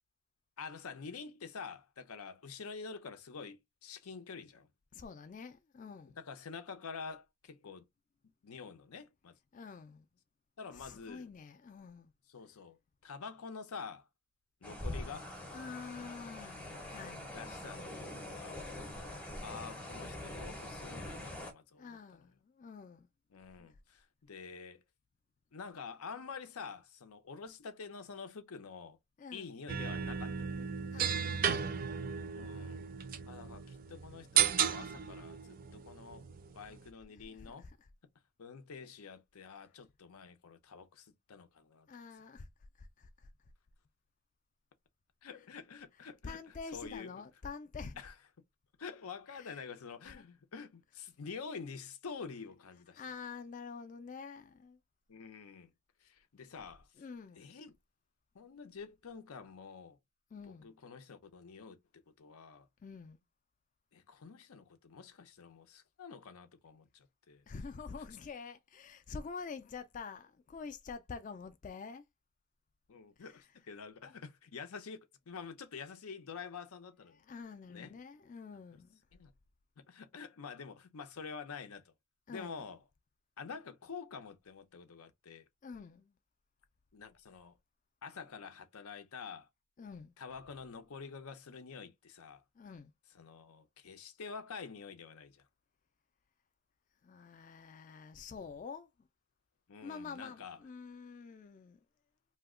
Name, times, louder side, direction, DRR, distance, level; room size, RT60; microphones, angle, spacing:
voice 1, 0.6-4.7 6.2-7.8 8.4-9.3 10.6-11.3 12.3-14.1 14.6-15.3 17.3-18.0 18.2-18.6 19.4-22.0 23.3-24.8 25.5-29.0 29.3-30.6 32.3-32.8 33.3-36.2 36.5-37.7 38.4-41.9 45.2-46.4 46.7-47.2 48.0-48.1 48.8-53.0 55.1-55.7 56.0-56.9 57.4-57.7 58.3-60.0 60.5-61.8 62.2-62.7 63.9-67.4 72.9-75.0 75.3-77.2 77.7-77.9 79.1-79.3 79.8-81.9 82.3-82.8 83.4-85.4 86.9-87.5 88.0-89.5 90.2-92.4 93.1-95.5 99.7-100.6, left 5 dB, 90° left, 0.6 m, -47 dB
voice 2, 4.9-6.2 9.5-10.1 10.7-12.1 15.5-17.3 21.8-23.1 23.6-23.8 29.2-29.5 30.9-31.7 37.1-37.9 41.9-42.5 42.8-43.3 46.0-48.0 49.3-49.6 50.0-50.2 52.9-54.8 57.0-57.5 60.3-60.7 62.8-63.2 67.5-72.1 73.2-73.6 77.1-79.0 82.3-82.6 85.6-86.2 89.8-90.1 92.5-92.9 97.0-99.1 99.8-101.9, left 5 dB, 35° left, 0.3 m, -47 dB
sound 1, 14.6-21.5, left 1 dB, 5° left, 0.7 m, -44 dB
sound 2, 29.7-36.9, right 8 dB, 40° right, 0.3 m, -35 dB
2.8 x 2.1 x 3.6 m
head